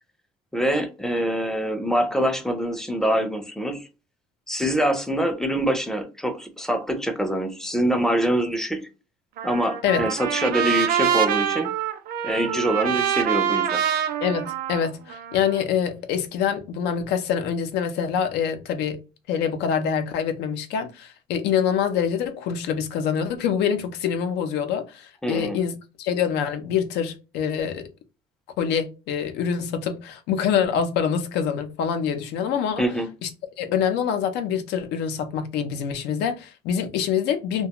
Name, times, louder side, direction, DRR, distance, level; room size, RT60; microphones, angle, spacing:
voice 1, 0.5-3.9 4.5-8.9 9.4-11.7 12.2-13.8 25.2-25.6 32.8-33.1, right 1 dB, 5° left, 0.4 m, -24 dB
Trumpet, 9.4-15.6, right 10 dB, 60° right, 0.4 m, -25 dB
voice 2, 14.2-19.0 19.3-27.9 28.6-32.8 33.2-33.3 33.6-37.7, left 8 dB, 85° left, 0.5 m, -25 dB
2.4 x 2.2 x 2.8 m
cardioid pair, 110°, 17 cm